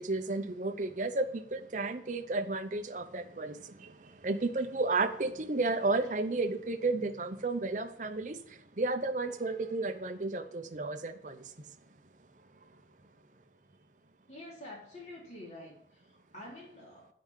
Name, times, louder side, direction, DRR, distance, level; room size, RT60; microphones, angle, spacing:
voice 1, 0.0-11.7, right 3 dB, 45° right, 8 dB, 0.8 m, -33 dB
voice 2, 14.3-17.1, left 1 dB, 40° left, -4 dB, 3.4 m, -48 dB
9.1 x 5.1 x 7.4 m, 0.63 s
head